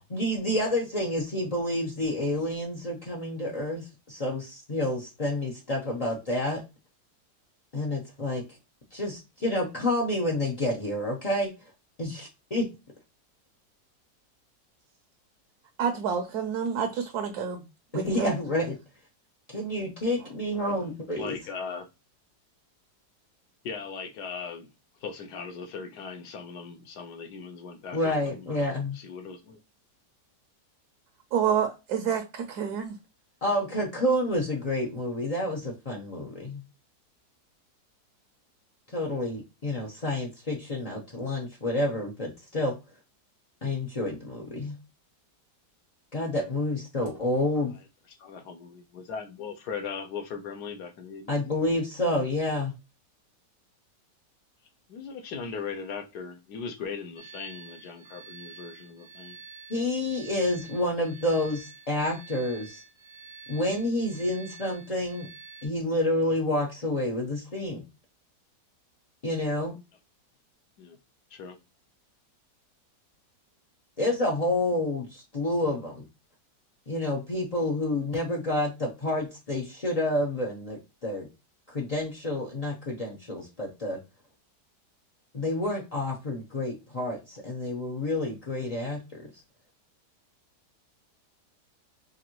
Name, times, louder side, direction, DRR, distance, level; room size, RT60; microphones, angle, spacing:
voice 1, 0.0-6.6 7.7-8.4 8.9-11.5 12.0-12.7 17.9-18.8 19.5-21.4 27.9-29.0 33.4-36.6 38.9-42.7 43.6-44.8 46.1-47.7 51.3-52.7 59.7-62.8 63.5-65.3 65.6-67.8 69.2-69.7 74.0-76.1 76.9-81.3 81.7-84.0 85.3-89.3, left 1 dB, 50° left, 0.4 m, -29 dB
voice 2, 15.8-17.6 17.9-18.3 31.3-33.0, right 7 dB, 70° right, 1.1 m, -28 dB
voice 3, 21.2-21.9 23.6-24.7 25.0-29.6 48.2-51.4 54.9-59.4 70.8-71.0 71.3-71.6, left 5 dB, 70° left, 1.3 m, -39 dB
sound 1, 57.2-65.7, right 6 dB, 50° right, 0.6 m, -48 dB
5.0 x 2.6 x 2.9 m
omnidirectional pair, 1.9 m